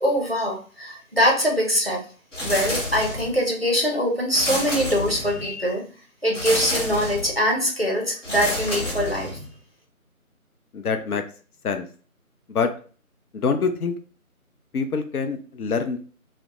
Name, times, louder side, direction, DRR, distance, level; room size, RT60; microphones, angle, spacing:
voice 1, 0.0-2.1 2.4-5.8 6.2-9.4, equal, 45° right, 0 dB, 0.5 m, -23 dB
sound 1, 2.3-3.4 4.3-5.5 6.3-7.4 8.2-9.5, left 1 dB, 55° left, 0.9 m, -29 dB
voice 2, 10.7-11.2 11.6-11.9 12.5-12.7 13.3-13.9 14.7-16.0, left 5 dB, 80° left, 7 dB, 0.6 m, -25 dB
2.3 x 2.1 x 2.9 m, 0.40 s
figure-of-eight pair, 175°, 44 cm